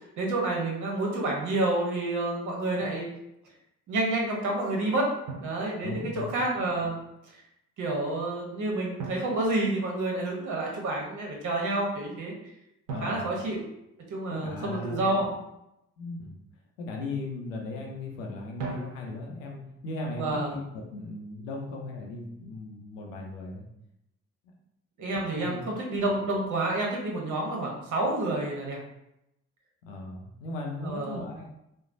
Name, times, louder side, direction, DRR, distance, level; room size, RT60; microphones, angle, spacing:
voice 1, 0.2-3.1 3.9-5.1 5.4-6.9 7.8-12.3 13.0-13.6 14.1-15.3 20.1-20.6 25.0-28.8 30.8-31.2, right 2 dB, 50° right, -1 dB, 0.9 m, -29 dB
Drum, 2.8-3.1 5.3-6.4 9.0-10.4 12.9-14.6 18.6-19.5, right 3 dB, 90° right, 0.5 m, -41 dB
voice 2, 5.8-6.4 12.9-13.3 14.3-15.2 16.0-16.4 16.8-23.7 25.4-25.7 29.8-31.5, left 2 dB, 90° left, 0 dB, 0.5 m, -37 dB
3.1 x 2.0 x 2.5 m, 0.84 s
hypercardioid pair, 45°, 37 cm